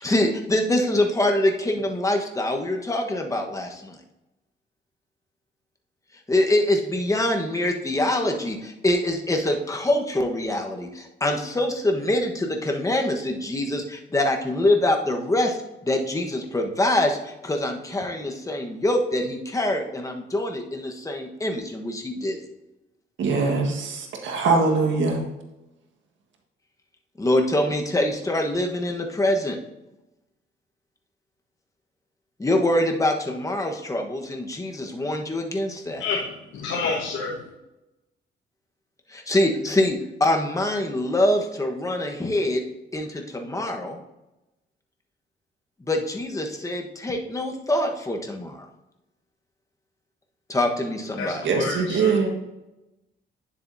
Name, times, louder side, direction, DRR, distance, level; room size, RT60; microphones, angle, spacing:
voice 1, 0.0-4.0 6.3-22.4 27.2-29.6 32.4-36.0 39.1-42.6 42.9-44.0 45.9-48.7 50.5-51.4, left 1 dB, 15° left, 2 dB, 1.3 m, -24 dB
voice 2, 23.2-25.2 51.4-52.3, right 4 dB, 75° right, 2 dB, 1.7 m, -22 dB
voice 3, 35.9-37.5 51.2-52.1, left 4 dB, 80° left, -3 dB, 1.3 m, -29 dB
9.7 x 7.5 x 2.8 m, 0.97 s
cardioid pair, 90°, 20 cm